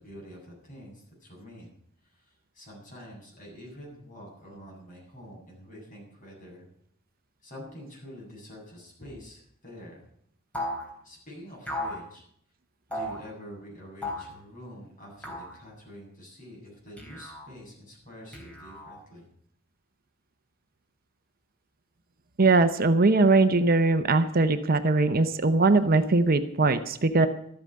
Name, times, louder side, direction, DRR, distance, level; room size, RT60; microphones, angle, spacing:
voice 1, 0.0-1.7 2.0-6.7 7.4-10.0 11.0-12.2 12.9-19.3, equal, 40° left, -2 dB, 8.0 m, -46 dB
sound 1, 10.5-10.9 11.7-12.0 12.9-13.2 14.0-14.3 15.2-15.6 17.0-17.5 18.3-19.0, left 1 dB, 5° left, 3.5 m, -35 dB
voice 2, 22.4-27.3, right 3 dB, 45° right, 10 dB, 0.8 m, -21 dB
13.5 x 8.8 x 9.6 m, 0.68 s
head